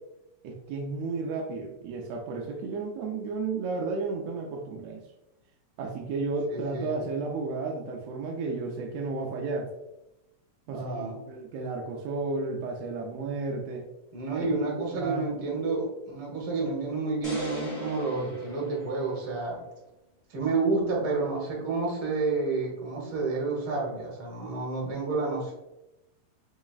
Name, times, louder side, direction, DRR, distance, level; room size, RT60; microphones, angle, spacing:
voice 1, 0.4-5.0 5.8-9.7 10.7-10.9 11.3-13.9 14.7-15.3, right 3 dB, 90° right, 1 dB, 1.4 m, -33 dB
voice 2, 6.5-7.0 10.7-11.2 14.1-19.6 20.3-25.5, right 3 dB, 60° right, -2 dB, 1.5 m, -30 dB
sound 1, 17.2-19.5, left 1 dB, 45° left, 0.8 m, -38 dB
4.5 x 3.1 x 2.3 m, 0.93 s
omnidirectional pair, 3.5 m